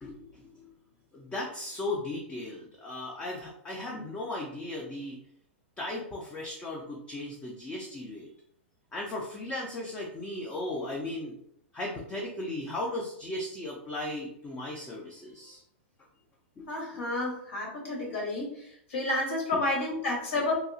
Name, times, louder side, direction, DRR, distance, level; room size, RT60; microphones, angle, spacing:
voice 1, 0.0-0.6 1.1-5.2 5.8-8.3 8.9-11.4 11.7-15.6 16.6-16.7 16.9-17.0 18.1-18.2 19.5-19.6, left 1 dB, 15° left, -2 dB, 0.4 m, -36 dB
voice 2, 16.7-20.6, left 2 dB, 80° left, -2 dB, 1.4 m, -30 dB
2.8 x 2.3 x 2.6 m, 0.71 s
hypercardioid pair, 140°, 7 cm